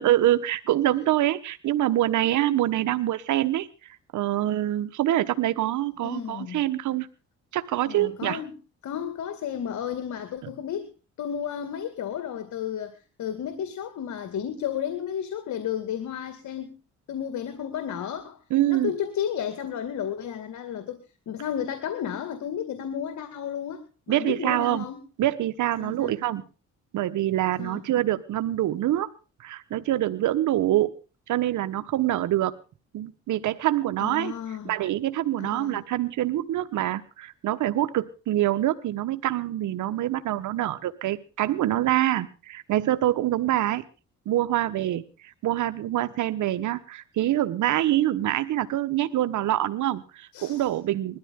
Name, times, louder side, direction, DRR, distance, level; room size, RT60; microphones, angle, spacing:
voice 1, 0.0-7.1 7.5-8.4 18.5-18.9 24.1-24.8 25.2-26.4 26.9-29.1 29.4-30.9 31.3-32.5 32.9-34.3 34.6-43.8 44.3-51.2, right 13 dB, 75° right, 11 dB, 1.3 m, -25 dB
voice 2, 6.0-6.6 7.9-10.9 11.2-16.8 17.1-18.4 18.7-25.0 25.8-26.1 27.6-27.8 34.0-34.7 35.4-35.8 50.3-50.7, left 9 dB, 70° left, 10 dB, 2.1 m, -33 dB
20.5 x 13.5 x 3.7 m, 0.34 s
cardioid pair, 90°, 30 cm